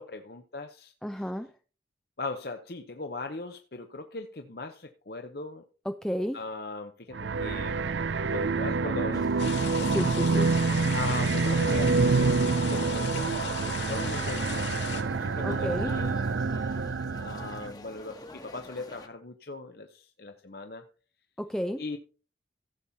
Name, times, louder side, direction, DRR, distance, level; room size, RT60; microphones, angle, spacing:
voice 1, 0.0-1.3 2.2-5.6 6.3-7.8 8.3-9.9 10.9-12.3 12.6-13.5 13.9-16.1 17.2-20.8 21.8-22.0, left 3 dB, 55° left, 6 dB, 0.9 m, -39 dB
voice 2, 1.0-1.5 5.9-6.4 9.9-10.5 15.4-15.9 21.4-21.8, equal, 5° left, 7 dB, 0.5 m, -31 dB
sound 1, 7.1-17.7, right 4 dB, 85° right, 0.6 m, -27 dB
sound 2, 9.1-19.1, left 2 dB, 20° left, 1.3 m, -47 dB
sound 3, 9.4-15.0, left 6 dB, 80° left, 3.0 m, -37 dB
16.0 x 7.3 x 4.1 m, 0.37 s
head